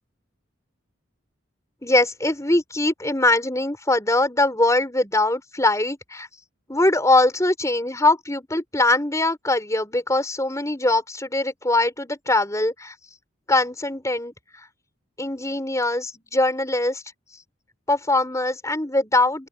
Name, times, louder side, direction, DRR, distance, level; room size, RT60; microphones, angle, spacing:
voice 1, 1.8-6.3 6.7-12.9 13.5-14.3 15.2-17.0 17.9-19.5, left 2 dB, 15° left, 5.7 m, -22 dB
open air
head